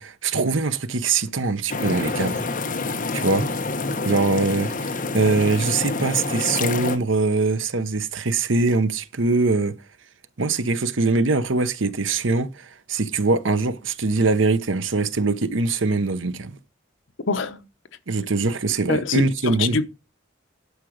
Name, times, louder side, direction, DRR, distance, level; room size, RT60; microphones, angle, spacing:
voice 1, 0.0-2.4 3.1-3.4 4.0-9.7 10.4-16.6 18.1-19.8, right 3 dB, 85° right, 0.9 m, -22 dB
sound 1, 1.7-7.0, left 3 dB, 45° left, 1.2 m, -27 dB
voice 2, 17.3-17.6 18.9-19.9, left 4 dB, 80° left, 1.0 m, -24 dB
11.0 x 5.0 x 6.4 m
head